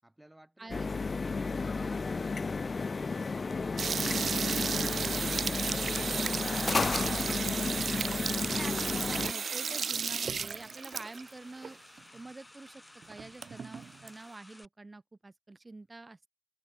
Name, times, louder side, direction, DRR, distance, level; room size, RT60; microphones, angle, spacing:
voice 1, 0.0-6.4, right 1 dB, 10° right, 6.3 m, -57 dB
voice 2, 0.6-1.5 7.2-7.6 8.5-11.8 12.1-12.8 13.1-16.3, right 2 dB, 30° right, 6.4 m, -47 dB
sound 1, 0.7-9.3, left 4 dB, 45° left, 0.4 m, -32 dB
sound 2, 3.8-11.3 11.6-11.7 12.0-12.1 12.7-12.8 13.0-14.1, right 6 dB, 65° right, 0.4 m, -34 dB
sound 3, 6.6-14.7, left 1 dB, 15° left, 5.1 m, -55 dB
cardioid pair, 85°, 0 cm